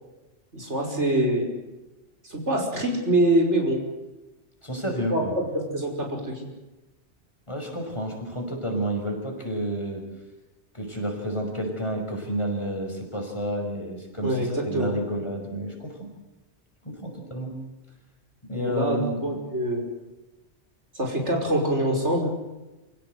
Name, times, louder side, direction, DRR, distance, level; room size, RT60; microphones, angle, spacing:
voice 1, 0.5-1.4 2.2-3.8 5.1-6.4 14.2-14.9 18.5-19.8 21.0-22.3, right 1 dB, 85° right, 2 dB, 5.9 m, -25 dB
voice 2, 4.6-5.3 7.5-10.0 10.7-16.1 16.8-17.6 18.4-19.4, right 1 dB, 25° left, 1 dB, 5.8 m, -30 dB
28.0 x 17.0 x 8.0 m, 1.1 s
omnidirectional pair, 1.2 m